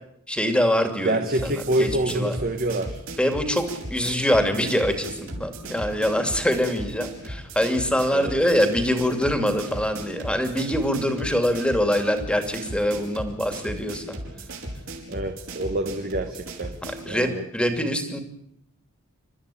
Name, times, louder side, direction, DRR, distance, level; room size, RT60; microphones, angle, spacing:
voice 1, 0.3-1.5 1.8-2.3 3.2-14.0 17.0-18.2, equal, 5° left, 6 dB, 2.6 m, -24 dB
voice 2, 1.0-3.0 8.1-8.4 15.1-16.8 17.0-17.4, right 1 dB, 45° right, 5 dB, 1.5 m, -26 dB
sound 1, 1.3-17.1, right 1 dB, 65° right, 5.7 m, -37 dB
29.0 x 13.5 x 8.6 m, 0.77 s
head